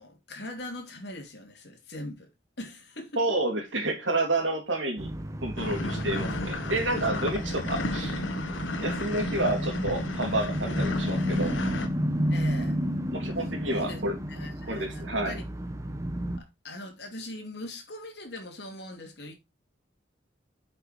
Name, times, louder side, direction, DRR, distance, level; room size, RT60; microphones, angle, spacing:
voice 1, 0.0-2.3 2.6-3.2 12.3-12.8 13.7-14.0 14.3-15.4 16.4-19.3, left 1 dB, 60° left, 2.9 m, -41 dB
voice 2, 3.2-5.1 5.4-8.1 8.8-11.6 13.1-14.1 14.7-15.4, right 2 dB, 85° right, 2.9 m, -29 dB
sound 1, 5.0-16.4, equal, 15° right, 0.8 m, -32 dB
sound 2, 5.6-11.9, left 2 dB, 90° left, 1.4 m, -34 dB
8.3 x 5.5 x 4.3 m
head